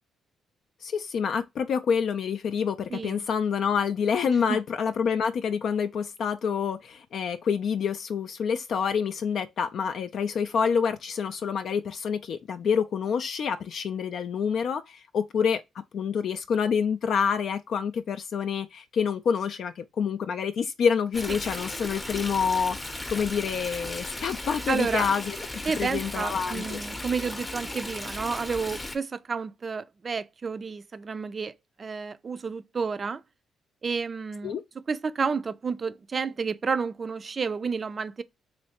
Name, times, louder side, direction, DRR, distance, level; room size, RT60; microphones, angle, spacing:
voice 1, 0.8-15.6 15.9-25.4 25.8-26.8 34.4-34.6, left 6 dB, 60° left, 0.3 m, -27 dB
voice 2, 2.9-3.2 4.3-4.6 21.3-21.4 24.7-25.1 25.7-31.5 31.8-33.2 33.8-34.5 34.9-38.2, right 5 dB, 35° right, 0.4 m, -30 dB
Stream, 21.1-29.0, left 1 dB, 15° left, 0.7 m, -36 dB
3.2 x 3.1 x 2.8 m
cardioid pair, 90°, 0 cm